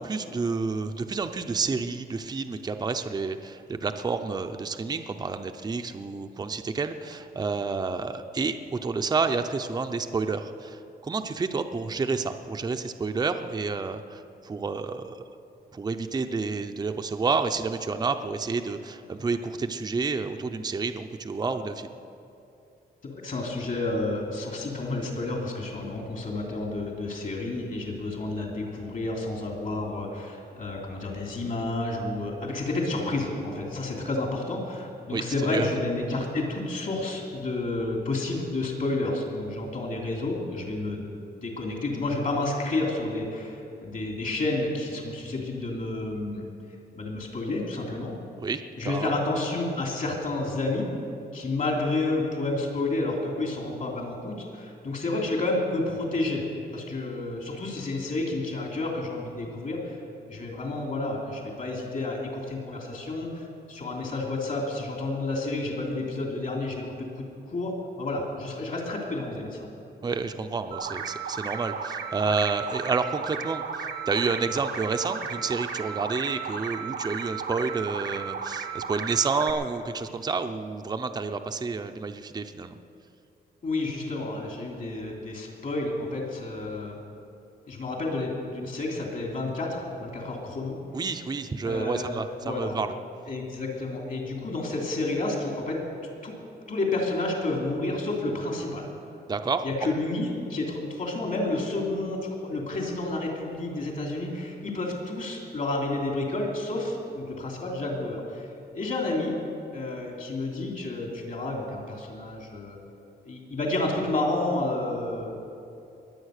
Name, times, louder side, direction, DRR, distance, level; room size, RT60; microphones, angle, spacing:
voice 1, 0.0-15.2 15.7-21.9 35.1-35.2 35.5-35.7 48.4-49.1 70.0-82.7 90.9-92.9 99.3-99.6, right 4 dB, 25° right, 7 dB, 0.6 m, -29 dB
voice 2, 23.0-41.1 41.4-46.4 46.9-48.1 48.7-50.9 51.3-56.4 56.7-60.0 60.3-69.7 83.6-87.1 87.7-90.8 91.6-92.1 92.4-92.8 93.3-95.8 96.2-96.4 96.7-98.9 99.6-108.5 108.7-109.4 109.7-112.8 113.2-115.4, left 2 dB, 50° left, 0 dB, 3.0 m, -30 dB
sound 1, 70.7-79.5, right 6 dB, 90° right, 1.4 m, -34 dB
21.5 x 8.7 x 6.5 m, 2.7 s
wide cardioid pair, 150°, 17 cm